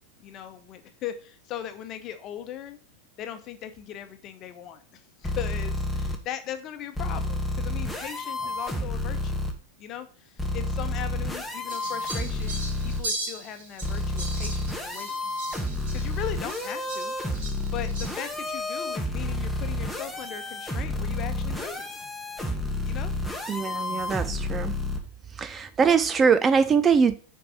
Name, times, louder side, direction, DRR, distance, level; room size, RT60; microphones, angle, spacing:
voice 1, 0.2-2.8 3.2-9.4 9.8-15.1 15.9-17.1 17.7-21.9 22.8-23.1, left 10 dB, 35° left, 1.0 m, -38 dB
sound 1, 5.2-6.2 7.0-9.5 10.4-13.0 13.8-25.0, left 2 dB, 5° left, 1.2 m, -30 dB
Fowl, 11.7-18.3, right 2 dB, 55° right, 3.4 m, -38 dB
voice 2, 23.5-24.7 25.4-27.2, right 6 dB, 20° right, 0.4 m, -22 dB
6.8 x 4.7 x 5.5 m
figure-of-eight pair, 90°, 0 cm